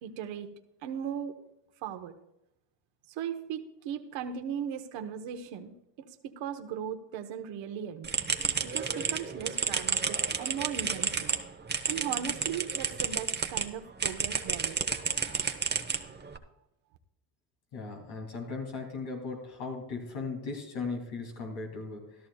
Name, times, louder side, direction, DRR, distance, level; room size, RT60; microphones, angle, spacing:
voice 1, 0.0-0.5 0.8-1.4 1.8-2.1 3.1-8.1 8.6-11.4 11.9-14.8 15.1-15.4, right 8 dB, 70° right, 6 dB, 1.2 m, -38 dB
sound 1, 8.0-13.7 14.0-16.4, right 5 dB, 20° right, 1.0 m, -31 dB
voice 2, 17.7-22.2, left 4 dB, 75° left, 0 dB, 3.0 m, -37 dB
14.0 x 12.5 x 2.3 m, 0.87 s
supercardioid pair, 75°, 47 cm